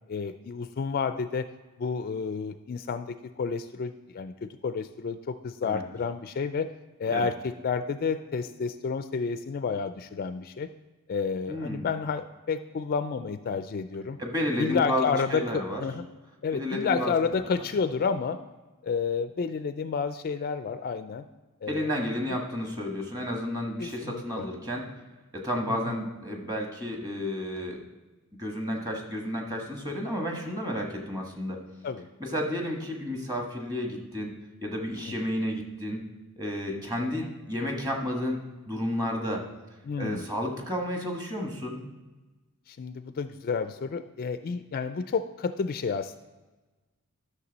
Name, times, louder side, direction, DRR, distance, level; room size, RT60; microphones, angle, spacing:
voice 1, 0.1-1.5 1.8-6.7 7.0-10.7 11.1-14.2 14.6-16.1 16.4-18.4 18.8-21.2 21.6-21.9 23.8-24.5 25.7-26.0 31.8-32.1 35.1-35.2 39.8-40.3 42.7-46.2, left 5 dB, 40° left, 10 dB, 0.3 m, -30 dB
voice 2, 11.5-11.9 14.2-15.8 16.5-17.1 21.7-24.9 25.3-27.8 28.4-31.6 32.2-34.3 34.6-36.0 36.4-38.4 38.7-39.4 40.0-41.8, left 1 dB, 15° right, 1 dB, 1.5 m, -31 dB
11.5 x 6.6 x 4.0 m, 1.2 s
head